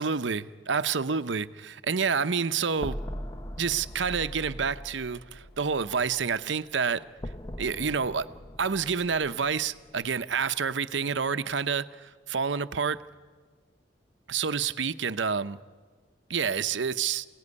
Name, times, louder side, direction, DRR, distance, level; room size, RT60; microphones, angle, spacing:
voice 1, 0.0-3.0 3.6-7.1 7.6-8.3 8.6-13.0 14.3-15.6 16.3-17.3, right 6 dB, 75° right, 12 dB, 0.8 m, -28 dB
sound 1, 2.8-6.8 7.2-10.6, equal, 20° left, 0.7 m, -41 dB
28.0 x 18.0 x 9.7 m, 1.5 s
head